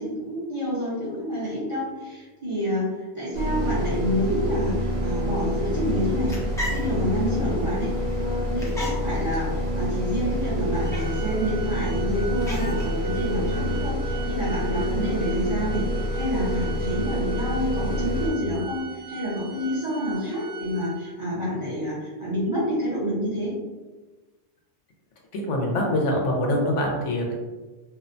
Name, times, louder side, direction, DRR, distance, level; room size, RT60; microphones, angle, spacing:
voice 1, 0.0-6.4 6.7-7.9 8.2-23.5, equal, 35° right, -9 dB, 0.6 m, -28 dB
sound 1, 3.3-18.3, equal, 80° right, 1.0 m, -27 dB
sound 2, 6.0-13.8, equal, 5° left, 0.3 m, -39 dB
Organ, 10.7-21.4, right 6 dB, 55° right, 1.0 m, -41 dB
voice 2, 25.3-27.3, left 1 dB, 85° left, 0 dB, 0.9 m, -24 dB
2.6 x 2.1 x 2.5 m, 1.2 s
omnidirectional pair, 1.2 m